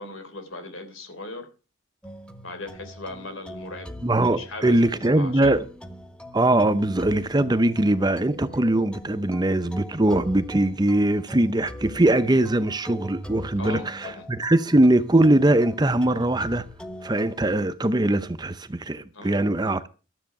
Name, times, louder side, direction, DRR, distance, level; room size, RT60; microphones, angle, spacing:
voice 1, 0.0-1.5 2.4-3.9 4.3-5.6 13.6-14.3 19.1-19.3, left 2 dB, 75° left, 3.5 m, -38 dB
sound 1, 2.0-17.6, equal, 5° left, 1.1 m, -41 dB
voice 2, 4.0-5.6 6.3-16.7 17.0-19.9, right 1 dB, 20° right, 0.6 m, -21 dB
13.0 x 7.8 x 6.0 m
head